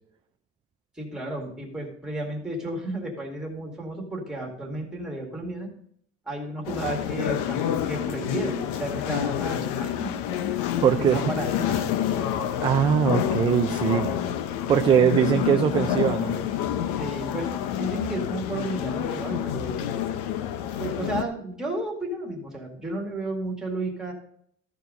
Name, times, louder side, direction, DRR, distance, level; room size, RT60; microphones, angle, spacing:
voice 1, 1.0-5.7 6.3-10.1 11.0-11.9 16.9-19.9 20.8-24.1, right 2 dB, ahead, -1 dB, 2.1 m, -33 dB
sound 1, 6.7-21.2, left 10 dB, 80° left, 0.8 m, -28 dB
voice 2, 10.8-11.2 12.6-14.1 14.7-16.3, right 8 dB, 20° right, 6 dB, 0.3 m, -21 dB
14.0 x 4.7 x 5.1 m, 0.64 s
cardioid pair, 165°, 30 cm